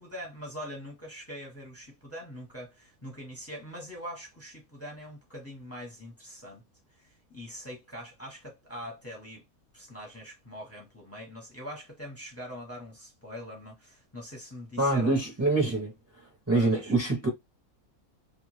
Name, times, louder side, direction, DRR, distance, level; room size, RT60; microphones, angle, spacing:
voice 1, 0.0-6.6 7.0-9.4 9.7-15.2 16.5-16.9, equal, 10° left, 0.8 m, -43 dB
voice 2, 14.8-15.9 16.5-17.3, right 2 dB, 15° right, 0.5 m, -25 dB
2.5 x 2.3 x 3.1 m
omnidirectional pair, 1.6 m